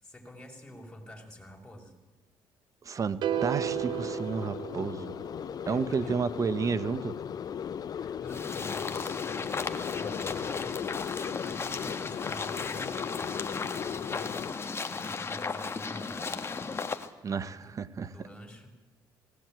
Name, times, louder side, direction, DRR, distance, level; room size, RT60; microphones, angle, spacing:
voice 1, 0.0-1.9 5.6-6.2 7.7-14.5 14.9-16.4 17.5-17.7 18.1-18.7, equal, 10° left, 0 dB, 6.2 m, -48 dB
voice 2, 2.8-5.1 5.7-7.2 17.2-18.1, right 5 dB, 40° right, 15 dB, 1.2 m, -31 dB
sound 1, 3.2-5.5, right 12 dB, 60° right, 0.6 m, -33 dB
sound 2, 3.3-14.5, left 8 dB, 50° left, 0.8 m, -37 dB
sound 3, 8.3-17.1, left 4 dB, 30° left, 1.6 m, -35 dB
18.5 x 18.0 x 9.2 m, 1.1 s
supercardioid pair, 80°, 8 cm